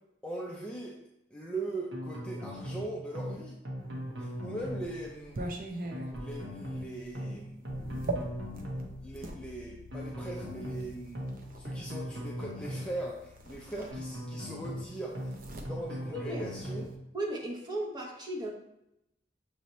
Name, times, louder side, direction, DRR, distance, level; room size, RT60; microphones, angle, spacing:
voice 1, 0.2-0.9 1.3-3.6 4.2-5.4 6.1-8.0 9.0-11.3 11.6-16.9, right 2 dB, 5° left, -3 dB, 0.5 m, -40 dB
sound 1, 1.9-2.8 3.1-3.4 3.6-4.9 5.9-6.8 7.1-7.4 7.6-8.9 9.9-10.8 11.1-11.4 11.6-12.9 13.9-14.8 15.1-15.4 15.6-16.9, equal, 75° right, 1.1 m, -39 dB
sound 2, 4.1-9.4 10.3-11.7 12.9-13.0 13.3-14.5 14.7-17.0, right 2 dB, 50° right, 0.6 m, -41 dB
Bass guitar, 7.7-13.9, left 3 dB, 80° left, 0.5 m, -50 dB
voice 2, 16.1-16.4 17.1-18.5, right 1 dB, 25° right, -1 dB, 0.9 m, -35 dB
6.4 x 2.7 x 3.0 m, 0.82 s
head